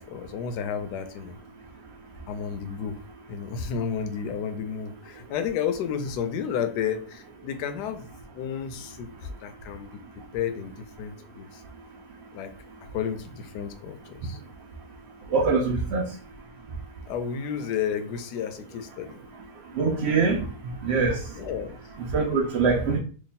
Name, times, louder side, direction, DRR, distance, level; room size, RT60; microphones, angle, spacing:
voice 1, 0.0-1.3 2.3-3.0 3.3-10.0 10.3-10.7 11.0-11.6 12.3-12.5 12.9-14.4 17.1-19.2 21.4-21.8, left 7 dB, 80° left, 9 dB, 1.1 m, -32 dB
voice 2, 15.3-16.0 19.8-20.4 20.8-21.2 22.1-23.0, right 4 dB, 80° right, 1 dB, 0.5 m, -23 dB
3.1 x 2.3 x 4.0 m, 0.40 s
omnidirectional pair, 1.8 m